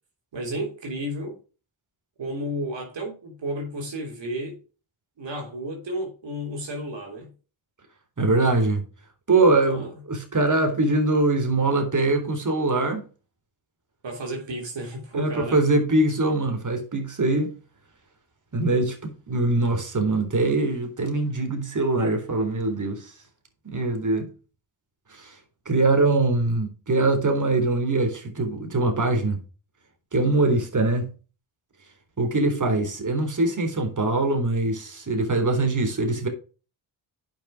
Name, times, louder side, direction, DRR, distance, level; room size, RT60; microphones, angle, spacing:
voice 1, 0.3-1.4 2.2-4.6 5.2-7.3 9.4-9.9 14.0-15.6, right 1 dB, 65° right, 3.4 m, -32 dB
voice 2, 8.2-8.8 9.3-13.0 15.1-17.5 18.5-23.1 23.6-24.3 25.1-25.4 25.7-29.4 30.1-31.1 32.2-36.3, right 2 dB, 40° right, 3.8 m, -23 dB
8.6 x 6.3 x 5.0 m
supercardioid pair, 45°, 48 cm